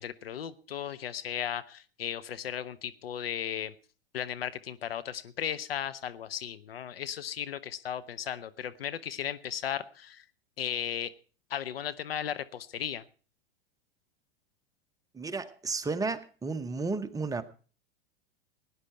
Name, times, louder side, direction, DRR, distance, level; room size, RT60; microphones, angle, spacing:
voice 1, 0.0-3.7 4.1-10.2 10.6-11.1 11.5-13.1, left 9 dB, 75° left, 0.8 m, -36 dB
voice 2, 15.1-17.4, right 4 dB, 10° right, 0.9 m, -33 dB
17.5 x 9.9 x 4.5 m
hypercardioid pair, 95°, 29 cm